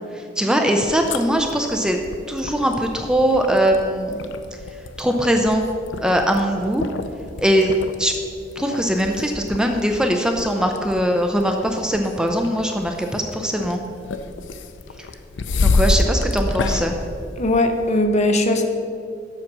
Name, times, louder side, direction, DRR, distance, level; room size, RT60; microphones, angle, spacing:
voice 1, 0.1-2.0 2.3-4.2 5.0-5.7 6.0-6.8 7.4-8.1 8.6-13.8 15.6-16.9, equal, 5° right, 3 dB, 0.4 m, -21 dB
sound 1, 0.8-18.0, left 3 dB, 70° left, 0.5 m, -29 dB
voice 2, 17.4-18.6, left 1 dB, 40° left, 5 dB, 0.7 m, -19 dB
7.7 x 5.7 x 6.0 m, 2.4 s
head